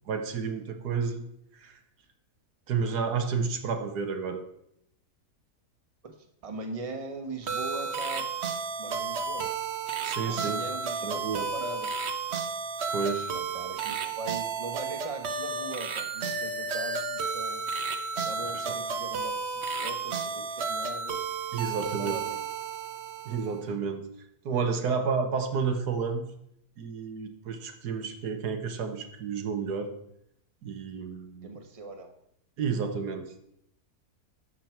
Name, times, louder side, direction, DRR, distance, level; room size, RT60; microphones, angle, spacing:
voice 1, 0.1-1.2 1.6-1.8 2.7-4.4 10.0-10.6 11.0-11.5 12.9-13.3 18.5-18.8 21.5-22.2 23.3-24.1 24.5-26.2 26.8-30.0 30.6-31.5 32.6-33.3, right 5 dB, 90° right, 6 dB, 1.7 m, -31 dB
voice 2, 6.4-8.3 8.8-9.6 10.3-11.9 13.3-17.7 18.2-21.3 21.8-22.4 31.4-32.1, right 3 dB, 25° right, 5 dB, 1.1 m, -40 dB
sound 1, 7.5-23.6, right 5 dB, 50° right, 1.0 m, -32 dB
12.0 x 7.6 x 4.5 m, 0.74 s
omnidirectional pair, 1.7 m